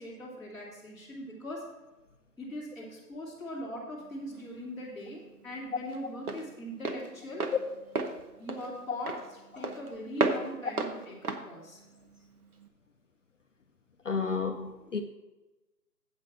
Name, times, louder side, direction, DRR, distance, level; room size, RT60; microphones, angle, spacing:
voice 1, 0.0-1.7 2.4-7.5 8.4-11.8, equal, ahead, 1.1 m, -41 dB
Walk footsteps, 4.0-12.7, right 3 dB, 60° right, 1.1 m, -35 dB
voice 2, 14.0-15.0, left 5 dB, 50° left, 0.6 m, -31 dB
8.0 x 5.0 x 7.5 m
figure-of-eight pair, 155°, 49 cm